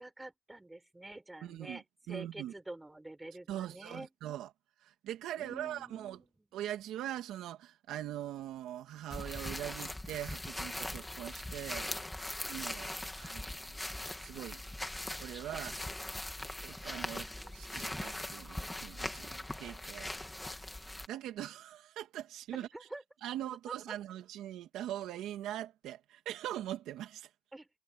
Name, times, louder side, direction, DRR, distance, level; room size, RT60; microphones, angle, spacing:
voice 1, 0.0-1.8 2.1-4.1 5.4-6.3 17.1-17.6 22.7-23.0 23.7-23.8 27.5-27.7, right 2 dB, 10° right, 6.0 m, -48 dB
voice 2, 1.4-2.5 3.5-4.5 4.8-6.2 6.5-12.0 12.5-13.8 14.2-14.6 15.2-15.8 16.6-20.1 20.8-22.7 23.2-27.3, right 12 dB, 90° right, 2.1 m, -42 dB
sound 1, 9.1-21.1, left 1 dB, 10° left, 2.5 m, -41 dB
cardioid pair, 90°, 0 cm